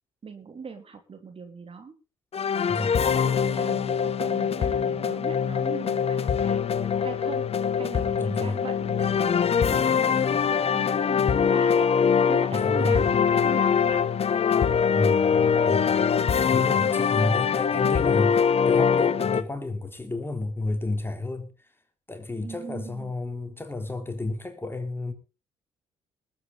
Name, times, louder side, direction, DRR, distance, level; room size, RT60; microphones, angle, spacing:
voice 1, 0.2-2.0 3.0-11.9 12.3-14.0 15.5-15.8 16.7-17.0 22.4-23.1, right 5 dB, 40° right, 3.2 m, -40 dB
sound 1, 2.3-19.4, left 7 dB, 45° left, 1.0 m, -23 dB
voice 2, 8.2-8.6 12.5-13.1 14.9-16.1 16.5-21.5 22.1-25.1, left 2 dB, 15° left, 3.5 m, -30 dB
20.0 x 9.1 x 4.1 m
hypercardioid pair, 50°, 15 cm